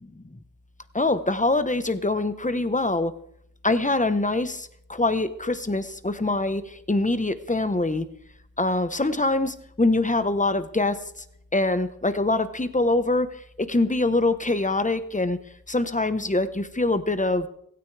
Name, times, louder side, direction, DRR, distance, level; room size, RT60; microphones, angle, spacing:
voice 1, 0.9-3.1 3.6-6.6 6.9-8.1 8.6-11.0 11.5-13.3 13.6-15.4 15.7-17.5, left 2 dB, 20° left, 11 dB, 1.1 m, -24 dB
16.5 x 16.5 x 3.4 m, 0.70 s
wide cardioid pair, 70°, 34 cm